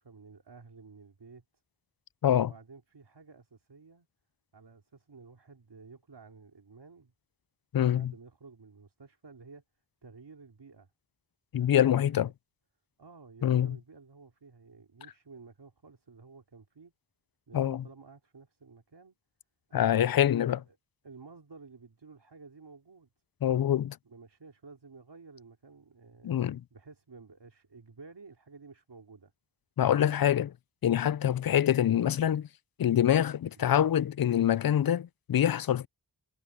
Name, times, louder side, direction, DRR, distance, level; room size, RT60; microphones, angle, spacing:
voice 1, 0.0-1.4 2.4-4.1 4.5-7.1 7.8-9.6 10.0-10.9 11.6-12.3 13.0-16.9 17.5-19.2 19.7-20.8 21.0-23.1 24.0-26.3 26.7-29.3 32.0-32.3 33.5-33.8, right 4 dB, 75° right, 3.8 m, -52 dB
voice 2, 7.7-8.1 11.5-12.3 13.4-13.8 17.5-17.8 19.7-20.6 23.4-24.0 26.2-26.6 29.8-30.5 30.8-32.4 32.8-35.9, left 10 dB, 60° left, 0.5 m, -25 dB
wide cardioid pair, 80°, 41 cm